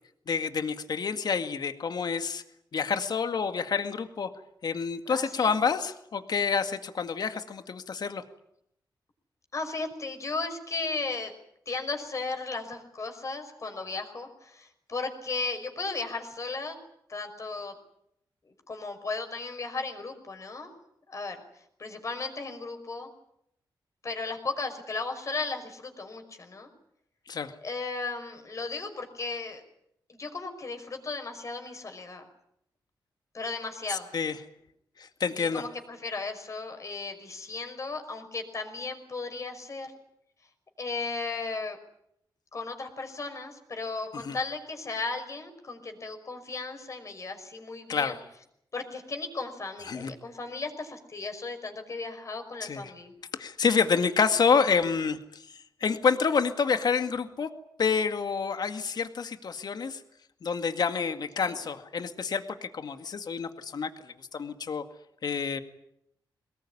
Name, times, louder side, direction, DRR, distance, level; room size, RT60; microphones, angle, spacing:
voice 1, 0.3-2.4 2.7-4.3 4.6-8.2 27.3-27.5 33.9-34.4 35.0-35.6 44.1-44.4 47.9-48.2 49.9-50.1 52.6-52.9 53.4-57.5 57.8-60.0 60.4-64.8 65.2-65.6, left 5 dB, 55° left, 8 dB, 2.1 m, -28 dB
voice 2, 5.1-5.5 9.5-11.3 11.7-16.8 17.1-17.7 18.7-20.7 21.1-21.4 21.8-23.1 24.0-26.7 27.6-29.6 30.1-32.3 33.3-34.1 35.3-39.9 40.8-41.8 42.5-48.2 48.7-53.1 61.4-61.6, left 3 dB, 40° left, 5 dB, 5.6 m, -35 dB
23.5 x 20.5 x 9.9 m, 0.76 s
wide cardioid pair, 120°, 8 cm